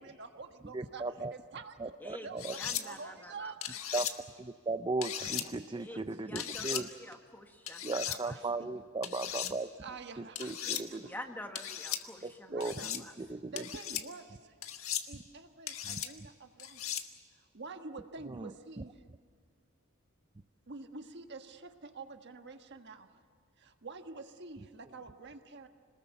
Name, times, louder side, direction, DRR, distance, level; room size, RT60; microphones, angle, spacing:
voice 1, 0.0-1.0 1.3-3.6 5.9-6.0 8.3-8.7 9.8-11.1 12.5-12.9 13.2-14.6 15.1-19.0 20.7-23.2 23.6-25.7, right 4 dB, 55° right, 6 dB, 1.5 m, -48 dB
voice 2, 0.7-1.3 1.8-2.5 3.9-4.1 4.4-6.9 7.8-9.7 10.4-11.1 12.5-13.6 15.8-16.0 18.3-18.5, right 3 dB, 25° right, 10 dB, 0.5 m, -37 dB
voice 3, 2.0-4.0 5.7-8.7 10.6-13.1, left 1 dB, 10° left, 4 dB, 1.7 m, -48 dB
sound 1, 2.4-2.8 3.6-4.1 5.0-5.5 6.4-6.8 7.7-8.2 9.0-9.5 10.4-10.8 11.6-12.0 12.6-13.0 13.6-14.0 14.6-15.1 15.7-16.1 16.6-17.0, left 10 dB, 80° left, 1.5 m, -37 dB
26.5 x 20.0 x 7.1 m, 2.1 s
head